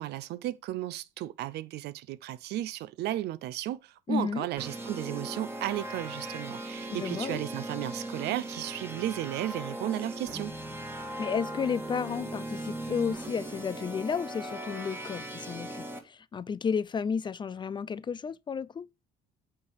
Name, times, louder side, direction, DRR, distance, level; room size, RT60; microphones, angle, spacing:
voice 1, 0.0-10.5, right 14 dB, 75° right, 0.7 m, -34 dB
voice 2, 4.1-4.5 6.9-7.4 11.2-18.9, left 6 dB, 25° left, 0.4 m, -32 dB
Jungle Pad, 4.6-16.0, right 1 dB, 15° right, 1.7 m, -39 dB
8.6 x 3.4 x 6.2 m
cardioid pair, 110°, 17 cm